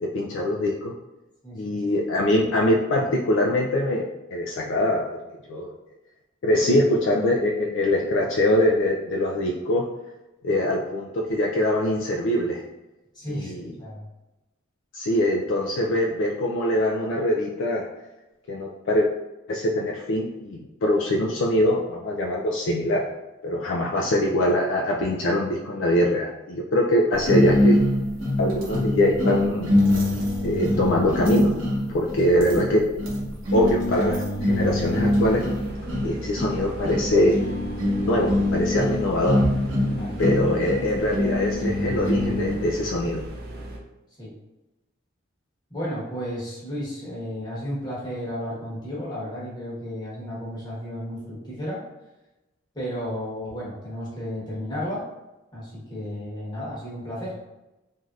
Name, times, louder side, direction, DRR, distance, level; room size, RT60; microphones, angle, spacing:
voice 1, 0.0-0.9 1.5-5.1 5.5-5.7 6.4-9.9 10.4-12.6 13.3-13.7 14.9-17.9 18.5-19.1 19.5-23.0 23.4-27.8 28.4-29.7 30.4-31.5 31.9-32.8 33.5-35.4 36.0-37.4 38.0-39.4 40.2-43.2, left 1 dB, 60° left, -1 dB, 0.3 m, -23 dB
voice 2, 1.4-1.8 13.1-14.0 39.9-40.2 44.2-44.3 45.7-51.8 52.7-55.0 55.5-57.4, equal, 20° left, -7 dB, 1.1 m, -33 dB
sound 1, 27.2-42.7, left 1 dB, 65° right, 0.9 m, -24 dB
sound 2, 34.5-43.8, right 1 dB, 50° right, 0.4 m, -38 dB
3.2 x 2.6 x 2.4 m, 1.0 s
head